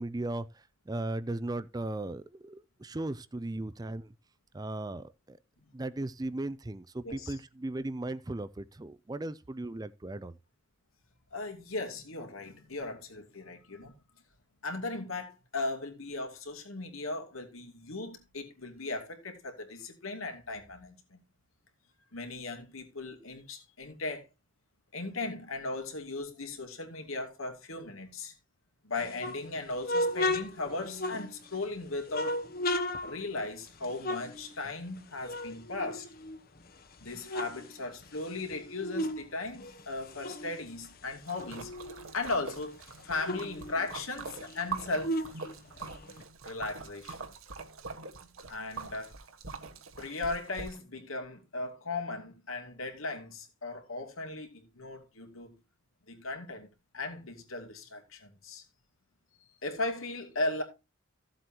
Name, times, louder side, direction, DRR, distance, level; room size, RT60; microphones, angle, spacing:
voice 1, 0.0-4.1 4.5-5.4 5.7-10.4, right 2 dB, 20° right, 0.4 m, -37 dB
voice 2, 11.3-13.9 14.6-21.2 22.1-24.3 24.9-28.3 28.8-32.4 33.0-36.1 37.0-41.8 42.1-42.8 43.0-45.2 46.4-47.3 48.5-49.1 50.0-55.6 56.1-58.6 59.6-60.6, left 2 dB, 85° left, 2.7 m, -37 dB
sound 1, 29.0-31.6 32.1-35.0 35.2-36.6 37.0-39.2 39.5-42.1 42.5-42.6 42.8-46.2, left 1 dB, 45° left, 1.0 m, -35 dB
Splash splatter, 41.3-50.8, right 4 dB, 85° right, 1.4 m, -44 dB
15.0 x 7.7 x 2.9 m
head